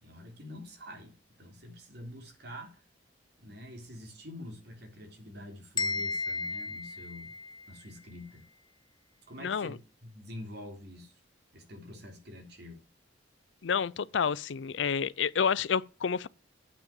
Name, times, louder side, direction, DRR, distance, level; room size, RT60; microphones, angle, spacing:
voice 1, 0.0-2.8 3.4-7.3 7.7-8.4 9.3-11.1 11.5-12.8, left 1 dB, 65° right, 3.4 m, -46 dB
sound 1, 5.8-7.8, left 3 dB, 25° left, 1.0 m, -34 dB
voice 2, 9.4-9.7 13.6-16.3, left 6 dB, 85° left, 0.5 m, -29 dB
8.8 x 5.9 x 7.7 m
head